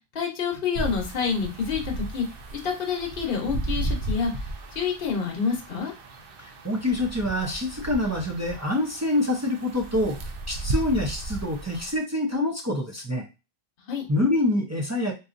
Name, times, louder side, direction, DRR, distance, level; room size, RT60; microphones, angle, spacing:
voice 1, 0.1-2.3 2.5-5.9 13.8-14.0, left 6 dB, 55° left, 1 dB, 1.0 m, -28 dB
sound 1, 0.7-11.9, right 2 dB, 60° right, 0.8 m, -34 dB
voice 2, 6.4-10.2 10.5-13.2 14.1-15.1, left 1 dB, 25° right, 0 dB, 0.3 m, -26 dB
3.9 x 2.6 x 2.5 m, 0.28 s
omnidirectional pair, 1.1 m